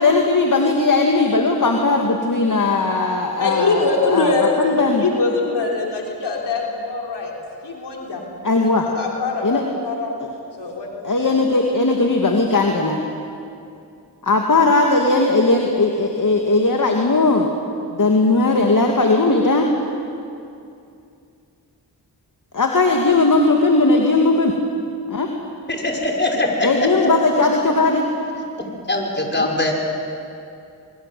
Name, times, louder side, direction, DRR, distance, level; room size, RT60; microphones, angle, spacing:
voice 1, 0.0-5.0 8.4-8.9 9.4-9.6 11.0-13.0 14.2-17.5 17.9-19.7 22.5-24.5 25.1-25.3 26.6-28.0 29.4-29.5, left 3 dB, 50° left, 2 dB, 2.5 m, -18 dB
voice 2, 3.4-7.3 7.6-8.3 8.8-10.1 10.6-11.2, left 3 dB, 80° left, -1 dB, 3.6 m, -23 dB
voice 3, 25.7-26.9 28.6-29.7, left 2 dB, 25° left, 0 dB, 6.1 m, -22 dB
23.5 x 23.0 x 8.0 m, 2.5 s
cardioid pair, 45°, 40 cm